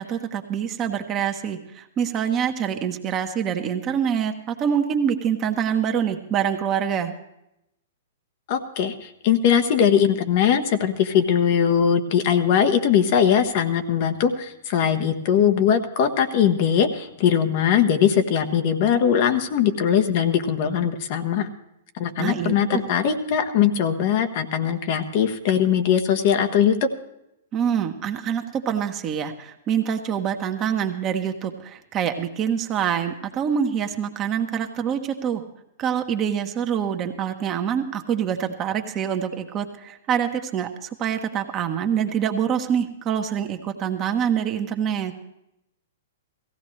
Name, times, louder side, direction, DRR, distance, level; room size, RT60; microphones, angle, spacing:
voice 1, 0.0-7.1 22.2-22.8 27.5-35.4 35.8-45.1, right 8 dB, 30° right, 5 dB, 1.3 m, -25 dB
voice 2, 8.5-21.5 21.9-26.9, left 8 dB, 50° left, 7 dB, 1.2 m, -20 dB
17.5 x 15.5 x 3.3 m, 0.83 s
hypercardioid pair, 115°, 0 cm